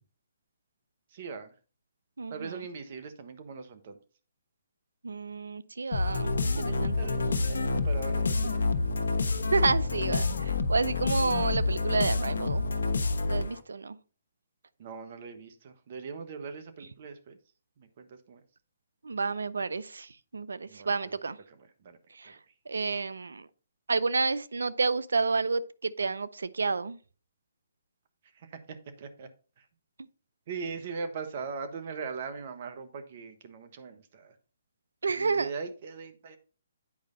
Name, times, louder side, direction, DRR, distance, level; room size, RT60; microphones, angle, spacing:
voice 1, 1.1-1.5 2.3-4.0 6.6-8.7 14.8-17.4 17.8-18.4 20.7-21.2 21.8-22.0 22.2-22.3 28.4-28.5 29.0-29.3 30.5-34.3 35.2-36.4, right 5 dB, 50° right, 1.2 m, -40 dB
voice 2, 2.2-2.7 5.0-7.0 9.5-12.7 13.3-14.0 19.0-21.4 22.2-22.4 22.7-23.5 23.9-27.0 35.0-35.5, right 4 dB, 80° right, 0.5 m, -30 dB
sound 1, 5.9-13.6, left 3 dB, 75° left, 1.0 m, -28 dB
8.7 x 5.1 x 3.9 m
hypercardioid pair, 140°, 0 cm